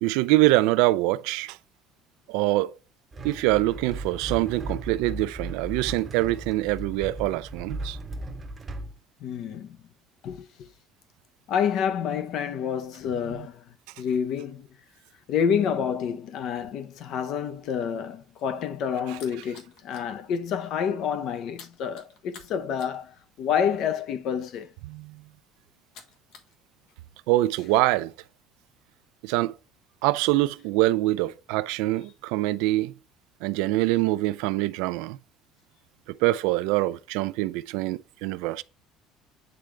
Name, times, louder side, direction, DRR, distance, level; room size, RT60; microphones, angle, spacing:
voice 1, 0.0-1.6 2.3-2.7 3.2-8.0 19.1-19.2 24.9-25.2 27.3-28.1 29.2-29.5 30.0-32.9 33.4-35.2 36.2-38.6, right 18 dB, 90° right, 0.4 m, -24 dB
sound 1, 3.1-8.9, right 2 dB, 25° right, 0.8 m, -36 dB
voice 2, 9.2-9.8 10.2-10.7 11.5-13.6 14.0-14.7 15.3-24.7, left 7 dB, 55° left, 0.7 m, -28 dB
sound 2, 18.4-20.1 20.5-20.7 21.0-26.5 26.8-27.8, left 4 dB, 75° left, 1.4 m, -47 dB
8.9 x 3.7 x 3.3 m
cardioid pair, 145°, 0 cm